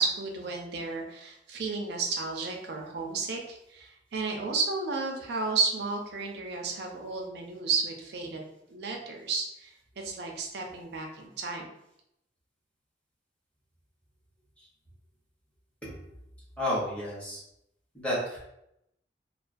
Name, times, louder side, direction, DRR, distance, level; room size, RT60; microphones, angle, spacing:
voice 1, 0.0-11.6, right 4 dB, 65° right, 2 dB, 0.5 m, -32 dB
voice 2, 16.6-17.4 17.9-18.4, left 1 dB, 5° left, -7 dB, 0.8 m, -31 dB
2.3 x 2.2 x 2.5 m, 0.81 s
head